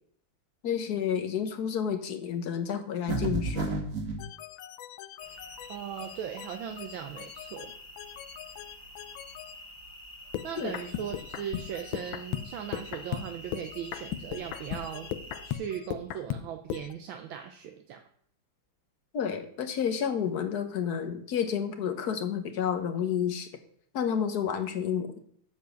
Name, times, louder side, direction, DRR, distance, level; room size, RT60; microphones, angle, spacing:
voice 1, 0.6-3.8 10.6-10.7 19.1-23.5 23.9-25.2, left 8 dB, 55° left, 8 dB, 1.4 m, -30 dB
sound 1, 3.1-4.2, right 3 dB, 40° right, 1.8 m, -30 dB
sound 2, 4.2-9.6 10.3-16.9, left 12 dB, 75° left, 1.3 m, -38 dB
sound 3, 5.2-15.5, equal, 15° left, 1.4 m, -47 dB
voice 2, 5.7-7.7 10.4-15.1 15.4-18.0, right 9 dB, 75° right, 6 dB, 1.5 m, -38 dB
8.3 x 7.0 x 6.3 m, 0.63 s
omnidirectional pair, 2.3 m